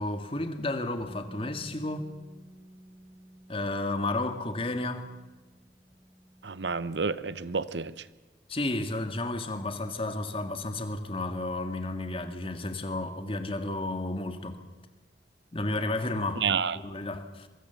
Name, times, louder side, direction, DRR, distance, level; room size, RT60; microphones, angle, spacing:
voice 1, 0.0-2.1 3.5-5.1 8.5-14.6 15.5-16.4 16.8-17.5, left 2 dB, 30° left, 2.0 m, -32 dB
Bass guitar, 1.0-7.3, equal, 75° left, 4.1 m, -53 dB
voice 2, 6.4-8.1 16.4-16.8, right 5 dB, 85° right, 0.9 m, -30 dB
23.5 x 22.5 x 7.1 m
head